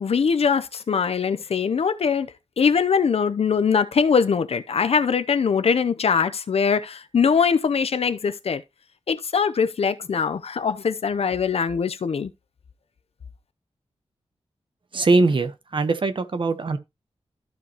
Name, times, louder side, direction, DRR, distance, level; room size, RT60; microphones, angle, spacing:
voice 1, 0.0-2.3 2.6-8.6 9.1-12.3, left 6 dB, 65° left, 0.7 m, -22 dB
voice 2, 14.9-16.8, right 3 dB, 50° right, 1.0 m, -21 dB
14.5 x 5.1 x 3.0 m
wide cardioid pair, 125°, 11 cm